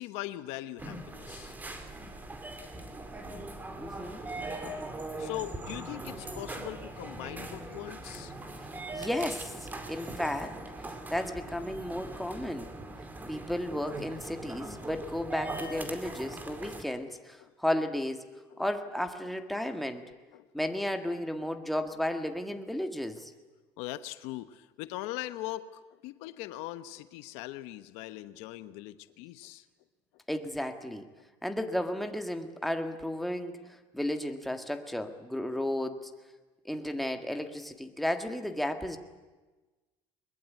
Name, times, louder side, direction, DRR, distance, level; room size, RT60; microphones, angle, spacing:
voice 1, 0.0-1.6 5.2-8.3 17.4-17.5 18.5-18.6 19.6-19.7 20.3-20.5 23.8-29.6, left 15 dB, 80° left, 13 dB, 1.1 m, -40 dB
sound 1, 0.8-16.8, right 2 dB, 15° right, 2.5 m, -41 dB
voice 2, 3.8-4.2 8.9-12.7 13.3-18.2 18.6-20.0 20.5-23.3 30.3-31.1 31.4-33.6 33.9-36.1 36.6-39.0, left 1 dB, ahead, 6 dB, 1.8 m, -33 dB
21.5 x 21.5 x 9.3 m, 1.2 s
cardioid pair, 135°, 11 cm